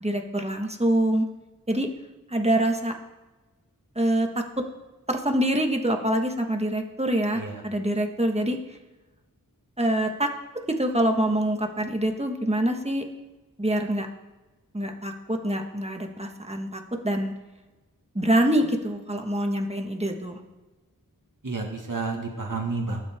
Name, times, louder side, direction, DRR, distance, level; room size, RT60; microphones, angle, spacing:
voice 1, 0.0-1.2 1.7-1.9 2.3-2.9 3.9-4.3 5.1-8.6 9.8-10.3 10.8-13.0 13.6-14.1 14.7-17.3 18.1-20.4, right 1 dB, 20° right, 3 dB, 1.7 m, -25 dB
voice 2, 21.4-23.0, right 3 dB, 60° right, 0 dB, 2.2 m, -30 dB
20.0 x 7.6 x 3.7 m, 1.2 s
wide cardioid pair, 40°, 35 cm